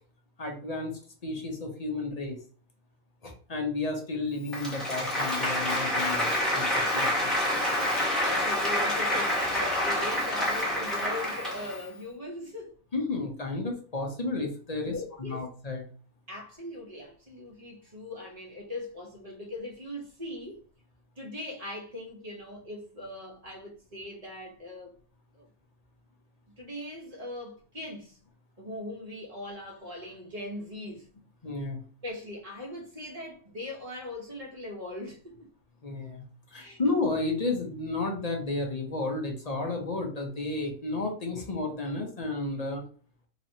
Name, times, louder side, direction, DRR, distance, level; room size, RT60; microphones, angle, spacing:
voice 1, 0.4-2.4 3.2-7.3 12.9-15.8 31.4-31.8 35.8-36.2 36.5-42.8, left 3 dB, 40° left, 0.6 m, -32 dB
Applause, 4.4-11.9, left 1 dB, ahead, 1.0 m, -28 dB
voice 2, 8.2-12.8 14.8-15.5 16.3-20.6 21.2-24.9 25.3-25.5 26.6-28.2 28.6-31.1 32.0-35.5 36.5-36.8, left 1 dB, 30° right, 0.9 m, -40 dB
4.0 x 3.0 x 2.7 m
omnidirectional pair, 1.6 m